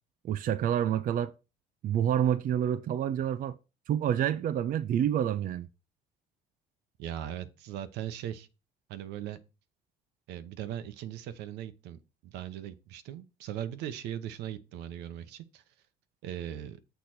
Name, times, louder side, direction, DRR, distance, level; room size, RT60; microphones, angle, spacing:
voice 1, 0.2-1.3 1.8-3.6 3.9-5.7, right 10 dB, 55° right, 0.6 m, -28 dB
voice 2, 7.0-8.5 8.9-9.4 10.3-15.6 16.2-16.8, right 11 dB, 90° right, 0.9 m, -39 dB
6.8 x 4.1 x 6.0 m
cardioid pair, 110°, 17 cm